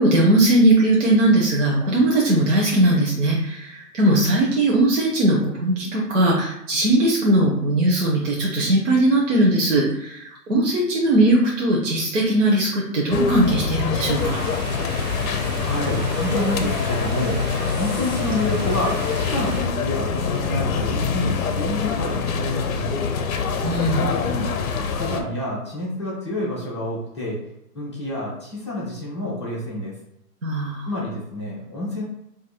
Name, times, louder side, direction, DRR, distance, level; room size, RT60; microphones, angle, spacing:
voice 1, 0.0-14.4 23.6-24.1 30.4-30.9, right 1 dB, 50° right, -3 dB, 0.7 m, -19 dB
sound 1, 13.1-25.2, left 5 dB, 60° left, 0.6 m, -25 dB
sound 2, 14.2-19.6, right 2 dB, 65° right, 1.1 m, -34 dB
voice 2, 15.6-17.4 17.8-23.2 23.9-24.5 24.9-27.4 27.7-29.9 30.9-32.0, left 1 dB, 20° left, -8 dB, 0.5 m, -28 dB
2.7 x 2.6 x 4.1 m, 0.79 s
hypercardioid pair, 170°, 47 cm